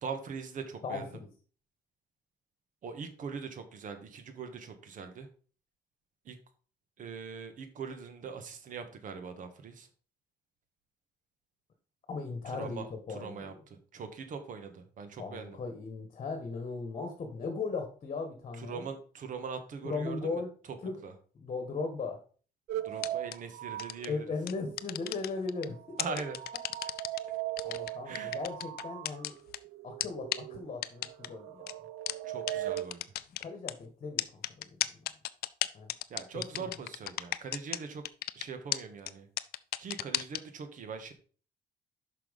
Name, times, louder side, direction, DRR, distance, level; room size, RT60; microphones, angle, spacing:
voice 1, 0.0-1.0 2.8-5.3 6.2-6.4 7.0-9.9 12.5-15.6 18.6-20.4 21.0-21.1 22.8-24.2 26.0-26.4 28.0-28.4 32.2-33.0 36.1-38.0 38.3-39.3 39.8-41.1, right 5 dB, 50° right, 7 dB, 1.5 m, -41 dB
voice 2, 0.8-1.3 12.1-13.6 15.1-18.9 19.8-20.5 20.8-21.0 21.4-22.2 24.1-26.1 27.6-29.3 29.8-31.7 33.4-35.0 35.7-35.9 36.5-36.7, left 4 dB, 35° left, 5 dB, 1.6 m, -38 dB
sound 1, 22.7-25.2 25.5-32.8, right 13 dB, 90° right, 0.6 m, -39 dB
sound 2, 23.0-23.3 23.8-24.1 24.5-25.6 26.0-27.2 27.6-29.6 30.0-30.1 30.3-30.4 30.8-31.3 31.7-31.8 32.1-32.2 32.5-32.6 32.8-33.7 34.2-37.8 38.0-38.4 38.7-38.8 39.1-39.2 39.4-40.4, left 15 dB, 65° left, 0.5 m, -33 dB
6.0 x 5.8 x 5.2 m, 0.40 s
cardioid pair, 110°, 17 cm